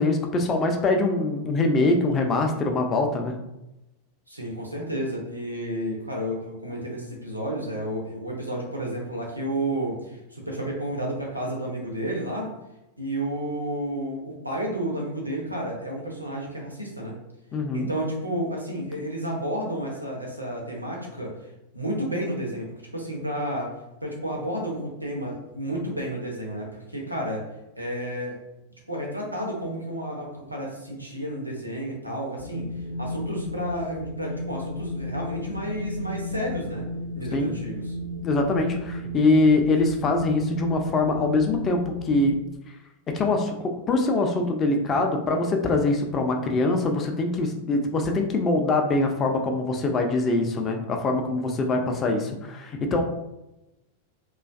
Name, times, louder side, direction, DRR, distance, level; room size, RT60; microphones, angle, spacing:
voice 1, 0.0-3.3 17.5-17.9 37.3-37.5 38.2-42.3 43.1-53.0, left 2 dB, 25° left, 3 dB, 0.4 m, -23 dB
voice 2, 4.3-12.5 13.0-17.2 17.7-23.7 24.0-27.5 27.8-28.4 28.9-32.7 33.0-36.8 37.1-37.9, right 1 dB, 85° right, -1 dB, 0.6 m, -31 dB
Wind, 32.4-42.4, left 1 dB, 75° left, 0.6 m, -34 dB
2.4 x 2.3 x 2.3 m, 0.92 s
figure-of-eight pair, 90°, 0 cm